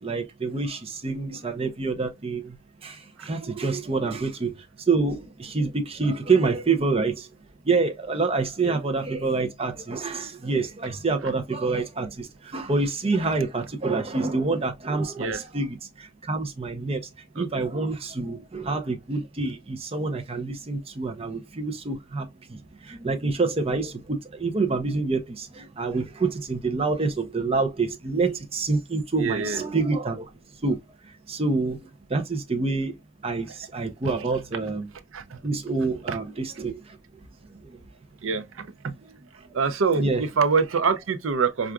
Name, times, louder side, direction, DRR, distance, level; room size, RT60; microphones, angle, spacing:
voice 1, 0.0-7.3 7.6-30.3 30.6-30.8 31.0-33.0 33.2-34.9 35.4-37.0 37.5-37.8 39.9-40.2, right 3 dB, 30° right, 0.5 m, -27 dB
voice 2, 29.2-29.6 34.0-34.3 35.1-35.4 36.1-36.2 38.2-38.9 39.5-41.7, right 5 dB, 75° right, 0.5 m, -26 dB
4.5 x 2.4 x 2.3 m
head